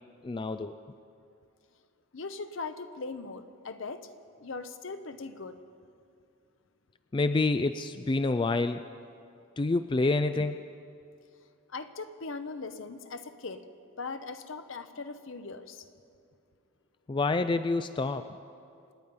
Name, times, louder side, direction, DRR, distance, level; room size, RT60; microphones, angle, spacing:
voice 1, 0.2-0.8 7.1-8.8 9.6-10.6 17.1-18.2, left 3 dB, 25° left, 10 dB, 0.3 m, -27 dB
voice 2, 2.1-4.1 4.4-5.6 11.7-13.6 14.0-15.9, left 4 dB, 65° left, 10 dB, 0.9 m, -39 dB
27.5 x 9.6 x 5.4 m, 2.4 s
head